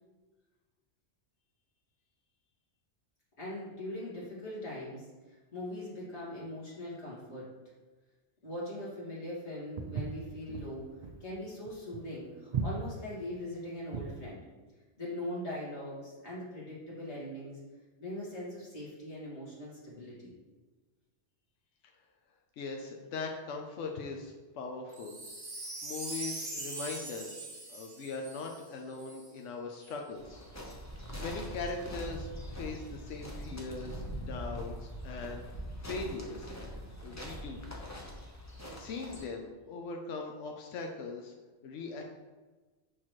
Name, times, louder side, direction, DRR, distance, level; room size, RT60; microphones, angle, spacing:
voice 1, 3.4-7.5 8.4-10.9 11.2-14.4 15.0-17.6 18.0-20.3, left 1 dB, 65° left, -7 dB, 2.4 m, -41 dB
Walk footsteps, 9.8-14.2, right 5 dB, 60° right, 0.4 m, -37 dB
voice 2, 22.6-25.1 25.8-30.4 31.2-35.4 35.8-36.5 37.0-37.6 38.8-41.3 41.6-42.0, left 3 dB, 80° left, 2 dB, 1.0 m, -40 dB
Wind chime, 24.9-29.3 29.8-29.9, right 2 dB, 75° right, 1.7 m, -42 dB
sound 1, 30.2-39.3, equal, 15° left, 0.8 m, -42 dB
6.4 x 5.7 x 3.1 m, 1.3 s
omnidirectional pair, 1.2 m